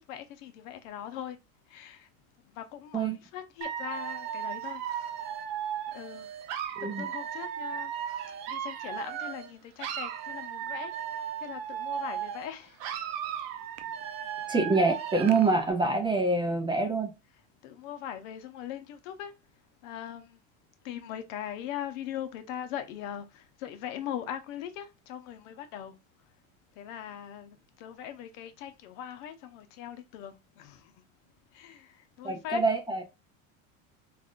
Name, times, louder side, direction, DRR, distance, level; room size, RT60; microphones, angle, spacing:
voice 1, 0.0-1.4 1.7-2.1 2.5-4.8 5.9-6.3 6.8-7.9 8.2-10.9 11.4-12.8 17.6-19.3 19.8-20.4 20.8-26.0 26.8-30.9 31.5-32.6, left 10 dB, 75° left, 0.8 m, -40 dB
Dog / Alarm, 3.6-9.5 9.8-12.5 12.8-15.5, right 9 dB, 65° right, 0.6 m, -36 dB
voice 2, 6.8-7.1 14.5-17.1 32.2-33.0, right 3 dB, 10° right, 0.4 m, -26 dB
3.5 x 2.5 x 2.4 m
supercardioid pair, 110°, 40 cm